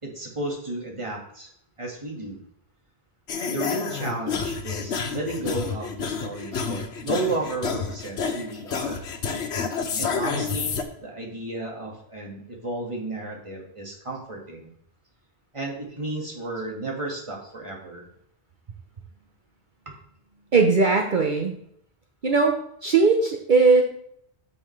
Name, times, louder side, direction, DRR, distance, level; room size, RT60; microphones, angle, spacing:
voice 1, 0.0-1.5 1.8-2.4 3.5-9.0 10.0-14.7 15.5-18.1 19.9-20.0, right 2 dB, 30° right, -1 dB, 1.9 m, -33 dB
sound 1, 3.3-10.8, left 5 dB, 80° left, 1.1 m, -29 dB
voice 2, 20.5-21.5 22.2-23.8, right 4 dB, 50° right, 2 dB, 0.9 m, -19 dB
9.1 x 7.0 x 3.2 m, 0.71 s
omnidirectional pair, 1.1 m